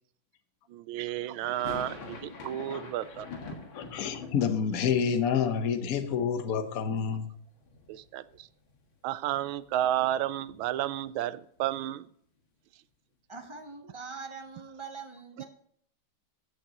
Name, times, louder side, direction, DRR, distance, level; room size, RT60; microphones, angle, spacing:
voice 1, 0.7-3.3 3.5-3.6 7.9-8.5 9.0-12.1, right 12 dB, 85° right, 15 dB, 1.4 m, -32 dB
sound 1, 1.4-7.3 7.6-8.4 8.7-8.8 9.1-11.2, left 4 dB, 80° left, 2.5 m, -46 dB
voice 2, 3.7-7.3, left 7 dB, 55° left, 8 dB, 1.2 m, -28 dB
voice 3, 13.3-15.4, right 4 dB, 40° right, 5 dB, 0.4 m, -43 dB
15.0 x 6.6 x 2.9 m, 0.64 s
omnidirectional pair, 2.1 m